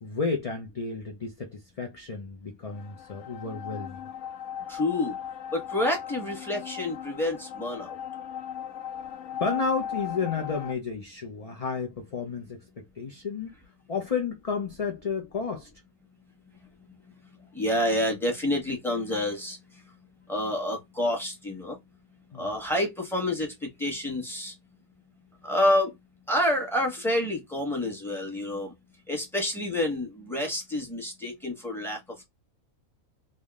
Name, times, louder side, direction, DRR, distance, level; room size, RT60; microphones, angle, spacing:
voice 1, 0.0-4.0 4.6-4.7 9.4-13.5 13.9-15.7 22.3-22.5, left 5 dB, 40° left, 0.5 m, -32 dB
sound 1, 2.7-10.7, left 9 dB, 70° left, 0.9 m, -37 dB
voice 2, 4.7-5.2 5.5-8.0 17.5-19.6 20.3-21.8 22.3-24.5 25.4-25.9 26.3-28.7 29.1-32.0, left 1 dB, ahead, 1.3 m, -28 dB
3.6 x 2.7 x 3.5 m
omnidirectional pair, 1.4 m